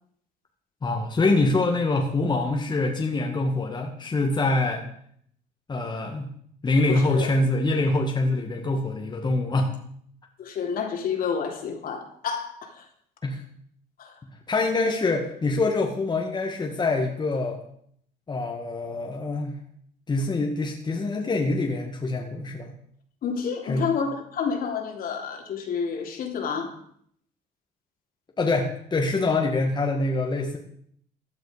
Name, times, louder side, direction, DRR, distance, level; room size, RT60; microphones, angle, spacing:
voice 1, 0.8-4.8 5.7-6.3 6.6-9.7 13.2-13.4 14.5-17.6 18.3-19.6 20.1-22.7 23.7-23.8 28.4-30.6, left 2 dB, 25° left, 1 dB, 1.9 m, -25 dB
voice 2, 6.9-7.3 10.4-12.8 14.0-14.1 23.2-26.7, left 6 dB, 60° left, 3 dB, 3.1 m, -29 dB
15.5 x 9.9 x 5.1 m, 0.66 s
cardioid pair, 110°, 17 cm